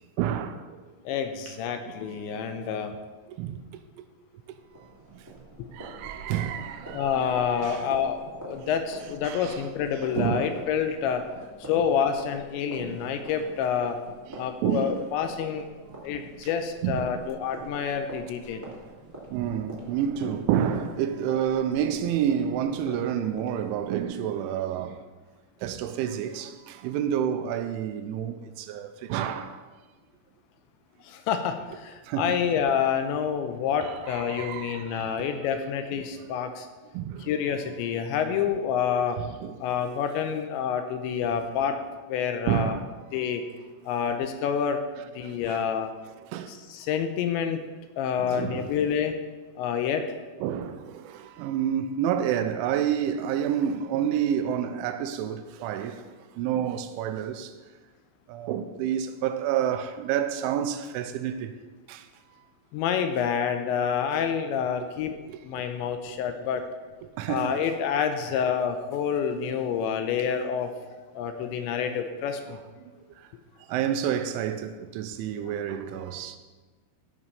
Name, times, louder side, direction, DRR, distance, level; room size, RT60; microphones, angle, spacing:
voice 1, 0.2-0.8 1.5-1.6 1.8-2.2 3.4-3.6 4.5-4.6 5.1-5.2 5.7-7.8 9.2-9.7 9.9-10.6 11.7-11.9 12.8-13.0 14.3-15.0 16.8-17.1 19.3-25.1 25.6-29.6 32.0-32.4 33.8-35.4 35.9-36.6 36.9-37.3 38.3-38.6 39.2-39.6 42.5-42.9 45.2-45.7 46.2-46.6 48.2-48.8 50.4-57.5 58.3-61.5 61.9-62.1 65.3-65.4 66.1-66.2 67.0-67.6 72.9-73.3 73.7-76.4, right 9 dB, 85° right, 3.0 m, -29 dB
voice 2, 1.1-2.9 6.9-11.2 11.7-14.0 14.4-15.7 16.0-18.7 31.0-36.7 37.2-39.2 39.6-41.8 42.1-42.8 43.1-43.4 43.9-44.8 45.2-45.9 46.5-47.6 48.0-49.2 49.6-50.1 62.7-65.2 65.4-66.6 67.3-70.7 71.1-72.6, left 7 dB, 80° left, 2.8 m, -28 dB
sound 1, 4.5-24.0, right 2 dB, 10° right, 0.9 m, -45 dB
15.0 x 5.6 x 5.5 m
omnidirectional pair, 5.6 m